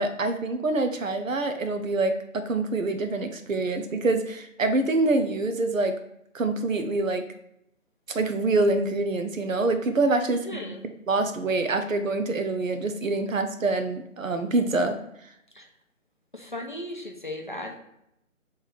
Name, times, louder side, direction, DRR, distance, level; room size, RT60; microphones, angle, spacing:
voice 1, 0.0-5.9 6.3-7.2 8.1-10.6 11.1-15.0, right 2 dB, 75° right, 8 dB, 0.8 m, -25 dB
voice 2, 10.4-10.8 15.5-15.7 16.3-17.8, left 1 dB, 40° left, 2 dB, 0.5 m, -36 dB
3.4 x 3.3 x 4.4 m, 0.79 s
figure-of-eight pair, 170°, 40 cm